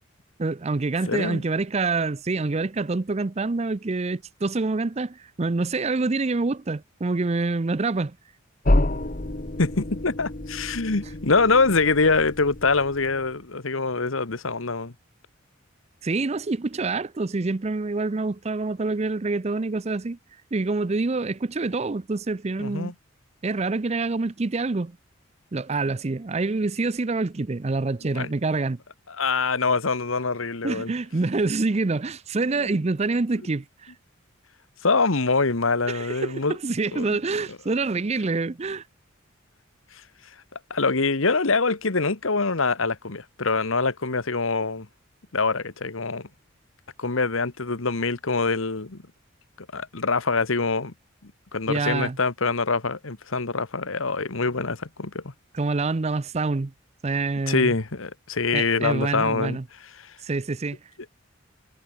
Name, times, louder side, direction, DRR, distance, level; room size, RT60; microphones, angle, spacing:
voice 1, 0.4-8.2 16.0-20.2 20.5-22.9 23.4-25.0 25.5-28.8 30.6-33.9 35.9-38.8 51.7-52.2 55.5-56.7 57.0-57.7 58.5-59.6 60.2-60.8, right 3 dB, 30° right, 0.5 m, -26 dB
voice 2, 1.1-1.4 9.6-14.9 22.6-22.9 28.1-28.3 29.1-30.9 32.6-32.7 34.8-36.6 36.9-37.1 40.7-44.9 45.3-46.3 47.0-49.0 49.6-50.9 51.2-55.2 57.5-59.6 60.0-60.1, left 4 dB, 75° left, 1.5 m, -24 dB
sound 1, 8.6-13.3, left 1 dB, 40° left, 1.5 m, -28 dB
head